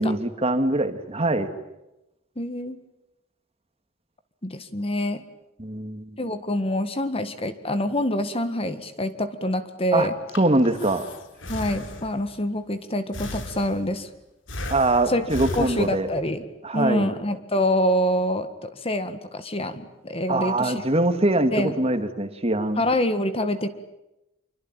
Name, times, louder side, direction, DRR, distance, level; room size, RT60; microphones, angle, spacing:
voice 1, 0.0-1.5 5.6-6.2 9.9-10.1 10.4-11.1 14.7-16.1 16.6-17.1 20.3-22.8, right 2 dB, 30° right, 8 dB, 2.2 m, -23 dB
voice 2, 2.4-2.8 4.4-5.2 6.2-10.1 11.5-14.1 15.1-15.3 15.6-16.5 16.7-20.8 21.5-21.8 22.8-23.7, left 1 dB, 30° left, 10 dB, 1.7 m, -26 dB
Breathing, 10.1-12.4 13.1-14.0 14.5-16.3, left 1 dB, 70° left, 3.6 m, -36 dB
26.5 x 24.0 x 9.1 m, 0.93 s
head